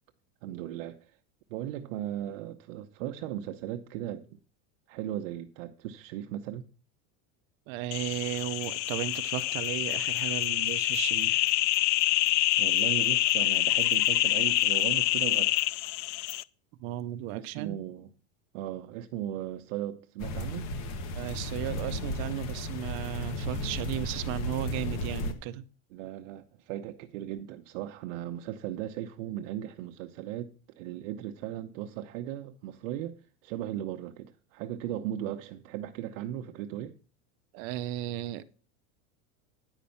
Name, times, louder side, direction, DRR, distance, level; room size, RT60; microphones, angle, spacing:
voice 1, 0.4-1.2 1.5-4.4 4.9-6.7 12.6-15.6 17.3-18.1 18.5-20.7 25.9-37.0, right 12 dB, 60° right, 0.9 m, -37 dB
voice 2, 7.7-11.5 16.8-17.8 21.1-25.6 37.5-38.4, right 13 dB, 30° right, 0.4 m, -35 dB
sound 1, 7.9-16.4, left 17 dB, 60° left, 0.5 m, -26 dB
sound 2, 20.2-25.3, left 1 dB, 40° left, 1.3 m, -34 dB
10.0 x 5.2 x 6.9 m
supercardioid pair, 165°, 42 cm